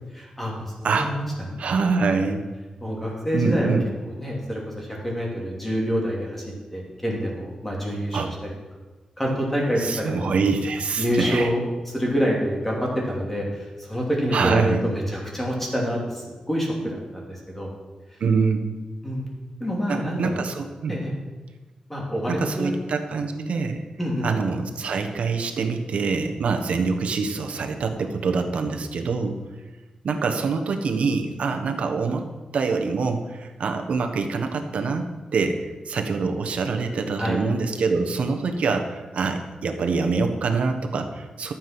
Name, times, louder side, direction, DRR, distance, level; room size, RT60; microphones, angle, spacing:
voice 1, 0.1-1.2 1.6-1.7 2.8-3.7 4.2-8.5 9.2-10.3 11.0-17.7 19.0-19.3 19.6-20.4 20.9-21.1 21.9-22.7 24.0-24.3 37.2-37.4, equal, 10° left, -2 dB, 2.9 m, -27 dB
voice 2, 1.6-2.5 3.3-3.9 8.1-8.3 9.8-11.5 14.3-14.8 18.2-18.7 19.9-20.9 22.3-23.8 24.2-29.4 30.0-32.3 32.5-35.0 35.3-41.5, right 4 dB, 75° right, 5 dB, 1.3 m, -25 dB
13.0 x 7.5 x 6.1 m, 1.2 s
wide cardioid pair, 150°, 2 cm